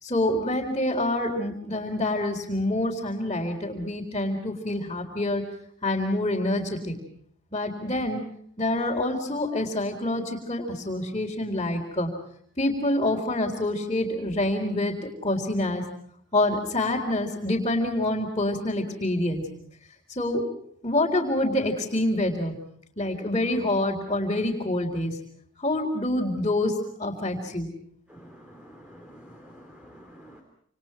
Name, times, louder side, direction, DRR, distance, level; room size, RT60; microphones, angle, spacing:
voice 1, 0.0-5.4 5.8-6.9 7.5-8.2 8.6-12.1 12.6-15.8 16.3-19.4 20.2-20.5 20.8-22.5 23.0-25.2 25.6-26.7 27.0-27.7, left 1 dB, 25° left, -4 dB, 4.1 m, -26 dB
voice 2, 28.1-30.4, equal, 5° right, 3 dB, 3.7 m, -49 dB
29.0 x 28.0 x 4.6 m, 0.65 s
head